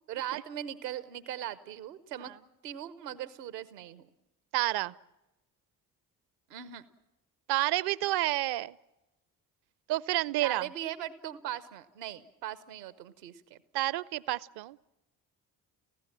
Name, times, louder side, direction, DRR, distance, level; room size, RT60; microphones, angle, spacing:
voice 1, 0.1-2.3 2.6-4.1 6.5-6.8 10.4-13.6, right 11 dB, 80° right, 15 dB, 1.1 m, -39 dB
voice 2, 4.5-4.9 7.5-8.7 9.9-10.7 13.7-14.8, right 17 dB, 55° right, 22 dB, 0.7 m, -29 dB
30.0 x 16.0 x 7.4 m, 0.98 s
figure-of-eight pair, 40°, 48 cm